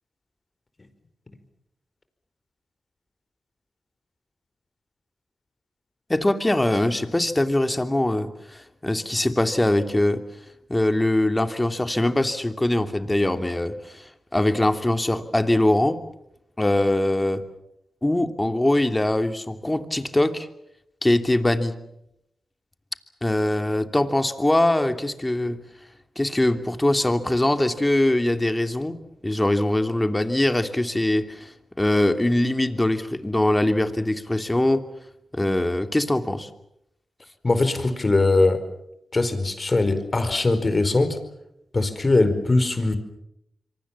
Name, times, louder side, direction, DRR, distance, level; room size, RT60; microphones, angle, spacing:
voice 1, 6.1-10.2 10.7-16.0 16.6-17.4 18.0-20.5 21.0-21.7 23.2-25.6 26.2-34.8 35.3-36.5, left 1 dB, 20° left, 8 dB, 2.9 m, -22 dB
voice 2, 37.4-38.6 39.1-41.2 41.7-43.0, left 2 dB, 40° left, 10 dB, 4.8 m, -21 dB
26.5 x 24.0 x 7.3 m, 0.82 s
supercardioid pair, 45°, 0 cm